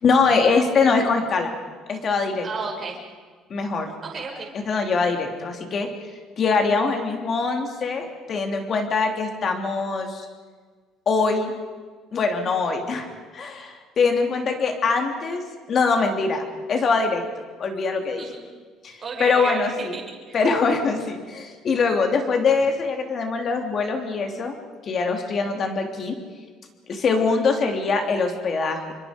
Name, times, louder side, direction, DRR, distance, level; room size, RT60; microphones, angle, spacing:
voice 1, 0.0-1.5 1.9-2.5 3.5-3.9 4.7-5.9 6.4-10.2 11.1-11.5 12.1-15.4 15.7-16.4 16.7-17.2 17.6-18.2 18.8-19.9 20.3-24.6 24.8-26.2 26.9-28.9, left 4 dB, 35° left, 4 dB, 3.2 m, -23 dB
voice 2, 2.4-3.0 4.0-4.5 18.2-18.4 19.0-20.4, right 4 dB, 25° right, -1 dB, 5.7 m, -32 dB
29.0 x 24.5 x 5.3 m, 1.5 s
cardioid pair, 170°, 0 cm